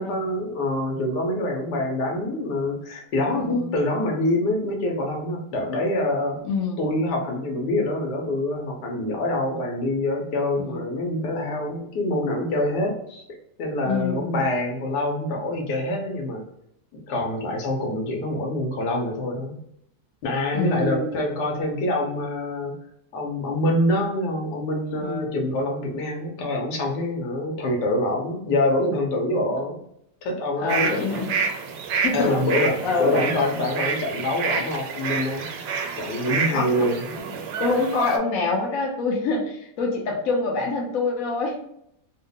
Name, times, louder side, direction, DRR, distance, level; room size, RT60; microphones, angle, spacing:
voice 1, 0.0-6.4 6.8-13.2 13.6-16.5 16.9-19.6 20.2-22.7 23.1-29.8 30.2-31.0 32.1-35.5 36.0-37.4, left 1 dB, 80° left, 1 dB, 1.3 m, -25 dB
voice 2, 3.4-3.7 6.4-6.8 10.6-10.8 13.9-14.3 20.5-21.1 24.9-25.3 30.6-31.3 32.0-32.4 32.8-33.2 36.5-36.9 37.6-41.6, left 3 dB, 65° left, 0 dB, 1.1 m, -26 dB
sound 1, 30.7-38.2, right 5 dB, 80° right, 1.1 m, -28 dB
3.1 x 2.1 x 3.7 m, 0.75 s
omnidirectional pair, 1.7 m